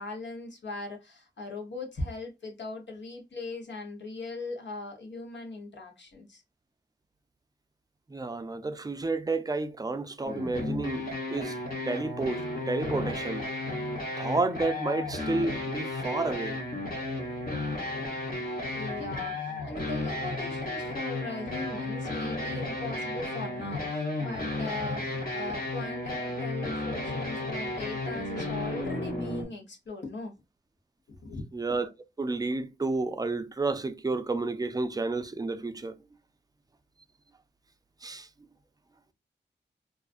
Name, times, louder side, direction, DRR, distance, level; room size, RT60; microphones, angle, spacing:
voice 1, 0.0-6.4 18.7-30.4 31.1-31.4, left 3 dB, 70° left, 0.9 m, -39 dB
voice 2, 8.1-11.6 11.9-13.4 14.2-16.6 31.5-31.9 32.2-35.9 38.0-38.3, right 3 dB, 20° right, 0.4 m, -31 dB
sound 1, 10.2-29.4, left 2 dB, 50° left, 1.1 m, -33 dB
2.4 x 2.3 x 2.4 m
cardioid pair, 45°, 19 cm